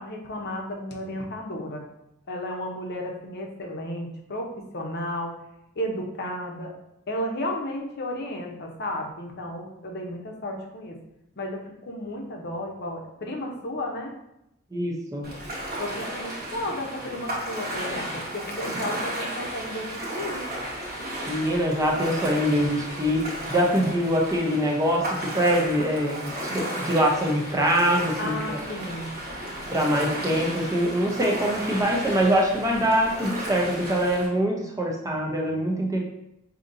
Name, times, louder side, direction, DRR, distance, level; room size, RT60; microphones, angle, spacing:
voice 1, 0.0-1.8 2.3-5.3 5.8-6.7 7.1-11.0 11.4-14.1 15.8-20.4 28.2-29.1, left 1 dB, 50° left, 1 dB, 0.7 m, -33 dB
voice 2, 14.7-15.3 21.3-25.1 25.3-28.8 29.7-36.0, equal, 15° right, -1 dB, 0.6 m, -24 dB
Ocean, 15.2-34.3, right 1 dB, 50° right, 1.1 m, -34 dB
5.2 x 2.7 x 2.6 m, 0.84 s
head